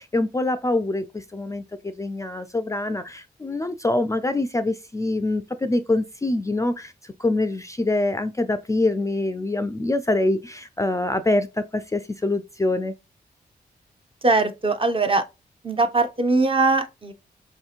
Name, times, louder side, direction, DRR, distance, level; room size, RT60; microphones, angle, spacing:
voice 1, 0.0-12.9, left 2 dB, 20° left, 0.3 m, -25 dB
voice 2, 14.2-15.2 15.6-17.1, right 3 dB, 30° right, 0.6 m, -21 dB
4.2 x 2.8 x 2.4 m
cardioid pair, 60°, 17 cm